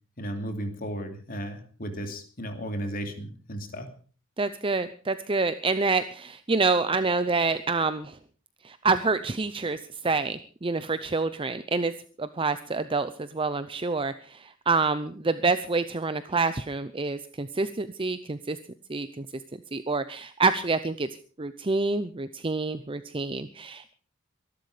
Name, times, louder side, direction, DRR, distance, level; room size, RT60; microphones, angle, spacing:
voice 1, 0.2-3.9, equal, 45° left, 6 dB, 2.9 m, -34 dB
voice 2, 4.4-8.2 8.6-11.9 12.2-18.6 18.9-19.3 19.7-21.1 21.4-23.9, right 3 dB, 25° right, 12 dB, 0.7 m, -27 dB
23.0 x 12.0 x 5.0 m, 0.41 s
head